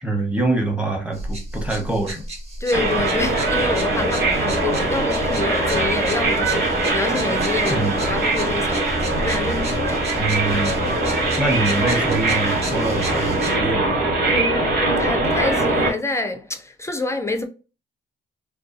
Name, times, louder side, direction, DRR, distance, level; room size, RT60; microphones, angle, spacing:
voice 1, 0.0-2.2 4.8-4.9 7.7-8.0 10.2-10.9 11.4-13.9, right 2 dB, 5° right, 0.8 m, -24 dB
sound 1, 1.1-13.6, right 1 dB, 30° right, 1.0 m, -35 dB
voice 2, 2.6-10.1 14.2-17.4, left 2 dB, 15° left, 0.3 m, -27 dB
sound 2, 2.7-15.9, right 2 dB, 55° right, 0.9 m, -21 dB
2.6 x 2.2 x 2.4 m
cardioid pair, 90°, 20 cm